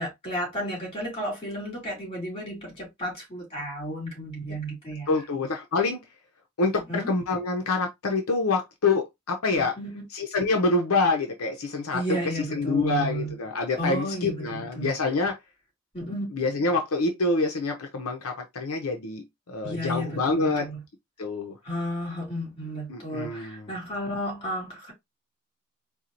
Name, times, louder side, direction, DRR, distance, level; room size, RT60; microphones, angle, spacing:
voice 1, 0.0-5.2 6.9-7.1 9.6-10.0 11.9-13.3 13.8-14.9 15.9-16.3 19.6-20.8 21.6-24.9, equal, 25° left, 2.7 m, -33 dB
voice 2, 5.1-6.0 6.6-9.7 10.1-15.4 16.3-20.7 21.2-21.6 22.9-23.7, left 3 dB, 80° left, 0.7 m, -26 dB
4.3 x 2.3 x 2.6 m
head